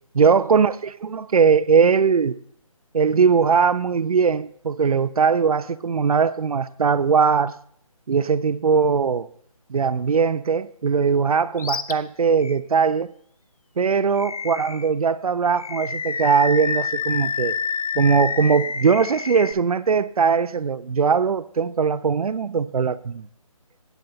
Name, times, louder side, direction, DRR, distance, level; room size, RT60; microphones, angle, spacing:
voice 1, 0.1-0.7 1.0-2.4 2.9-7.5 8.1-9.3 9.7-13.1 13.8-17.6 17.9-23.3, right 6 dB, 85° right, 0.5 m, -20 dB
Animal, 11.6-11.9 12.4-12.5 14.2-14.9 15.6-19.5, left 5 dB, 80° left, 0.6 m, -28 dB
9.2 x 7.6 x 3.8 m
hypercardioid pair, 175°, 18 cm